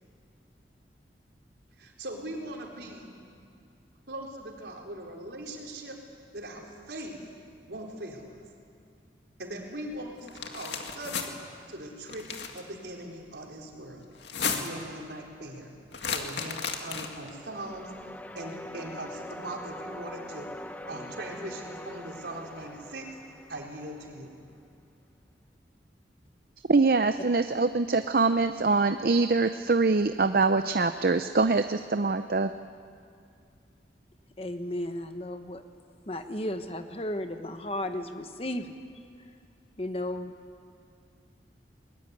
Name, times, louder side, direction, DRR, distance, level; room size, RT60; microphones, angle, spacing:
voice 1, 1.8-3.2 4.1-6.0 6.3-7.2 7.6-8.3 9.4-11.3 11.7-12.3 12.5-14.0 14.4-15.7 16.1-17.9 18.4-20.5 20.8-23.1 23.5-24.4, right 1 dB, 70° right, 0 dB, 4.0 m, -40 dB
sound 1, 10.3-11.3 12.1-12.6 14.1-14.9 15.9-17.3, left 6 dB, 80° left, 2.0 m, -33 dB
sound 2, 17.2-24.2, left 1 dB, 10° left, 0.7 m, -43 dB
voice 2, 26.7-32.5, right 3 dB, 50° right, 10 dB, 0.6 m, -24 dB
voice 3, 34.4-35.6 36.1-38.8 39.8-40.3, left 1 dB, 30° left, 7 dB, 1.1 m, -34 dB
22.0 x 20.5 x 9.7 m, 2.3 s
head